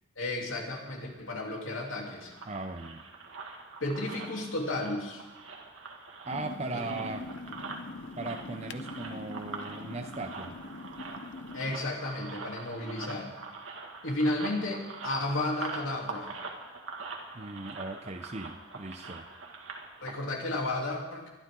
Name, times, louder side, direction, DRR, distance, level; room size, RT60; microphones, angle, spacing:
voice 1, 0.2-2.3 3.8-5.2 6.7-6.8 11.5-13.3 14.0-16.4 20.0-21.3, left 2 dB, 90° left, -1 dB, 3.3 m, -33 dB
sound 1, 1.5-20.2, right 4 dB, 90° right, 2.2 m, -44 dB
voice 2, 2.5-3.0 6.2-7.3 8.2-10.6 17.3-19.3, right 3 dB, 35° right, 6 dB, 0.7 m, -38 dB
sound 2, 6.3-11.8, left 3 dB, 65° left, 0.7 m, -43 dB
23.5 x 12.5 x 3.8 m, 1.2 s
head